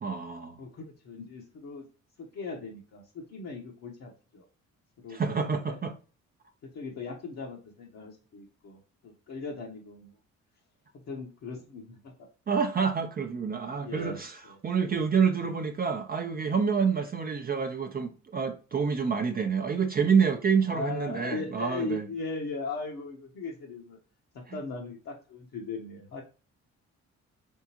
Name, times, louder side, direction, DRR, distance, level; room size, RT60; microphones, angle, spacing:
voice 1, 0.0-0.6 5.1-5.9 12.5-14.4 14.6-22.1 24.5-24.6, right 6 dB, 30° right, 0.5 m, -27 dB
voice 2, 0.6-1.9 2.2-4.4 5.0-5.8 6.6-10.2 10.9-12.1 13.8-15.0 20.6-24.0 24.3-26.2, left 3 dB, 60° left, 1.0 m, -39 dB
3.6 x 3.5 x 2.8 m
cardioid pair, 90°, 30 cm